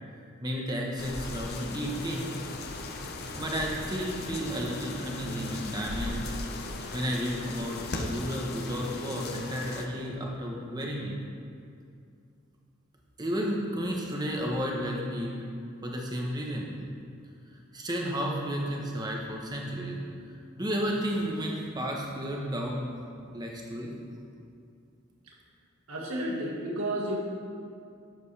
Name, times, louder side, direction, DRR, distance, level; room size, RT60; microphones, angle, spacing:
voice 1, 0.4-2.3 3.4-6.4 6.9-11.2 13.2-15.3 15.8-16.7 17.5-20.0 20.5-23.9, equal, 20° right, -1 dB, 1.2 m, -32 dB
sound 1, 1.0-9.8, left 2 dB, 50° left, 0.8 m, -38 dB
voice 2, 25.9-27.2, right 1 dB, 90° right, -2 dB, 1.9 m, -31 dB
11.5 x 7.9 x 3.4 m, 2.4 s
head